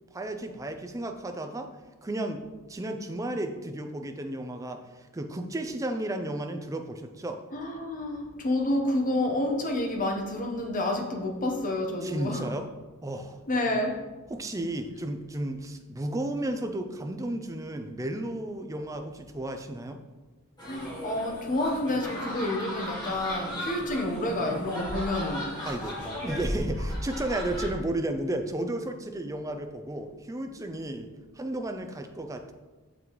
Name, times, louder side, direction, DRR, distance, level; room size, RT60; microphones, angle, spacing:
voice 1, 0.1-1.7 2.0-7.4 12.0-12.7 13.0-13.4 14.3-20.0 25.7-32.5, right 1 dB, 15° right, 6 dB, 0.4 m, -33 dB
voice 2, 7.5-12.5 13.5-14.0 20.6-26.1, left 1 dB, 35° left, 2 dB, 0.9 m, -29 dB
sound 1, 20.6-27.7, equal, 20° left, 1.9 m, -35 dB
6.8 x 6.0 x 3.1 m, 1.2 s
head